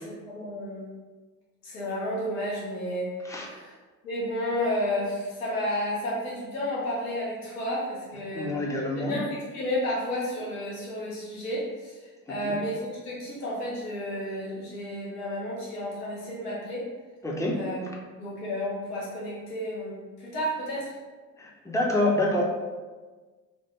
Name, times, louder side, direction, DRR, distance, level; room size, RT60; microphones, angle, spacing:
voice 1, 0.0-0.9 1.6-3.7 4.0-8.5 9.0-16.9 17.5-21.0, left 1 dB, 75° left, -6 dB, 0.9 m, -32 dB
voice 2, 8.3-9.2 12.4-12.6 17.2-17.6 21.4-22.4, left 1 dB, 5° left, -2 dB, 0.5 m, -27 dB
3.3 x 2.1 x 2.9 m, 1.4 s
figure-of-eight pair, 55°, 47 cm